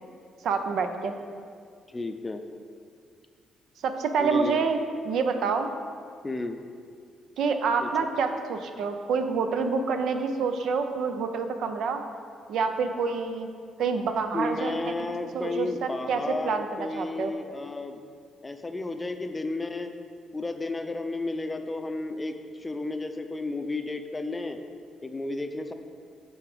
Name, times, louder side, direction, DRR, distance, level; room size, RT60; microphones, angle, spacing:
voice 1, 0.4-1.1 3.8-5.7 7.4-12.0 12.5-13.5 13.8-14.8 15.3-17.3, right 5 dB, 75° right, 7 dB, 0.5 m, -27 dB
voice 2, 1.9-2.4 4.2-4.6 6.2-6.6 7.8-7.9 14.3-18.1 18.4-19.9 20.3-24.6 25.0-25.7, left 2 dB, 20° left, 7 dB, 0.5 m, -32 dB
9.3 x 3.9 x 4.9 m, 2.2 s
cardioid pair, 90°, 0 cm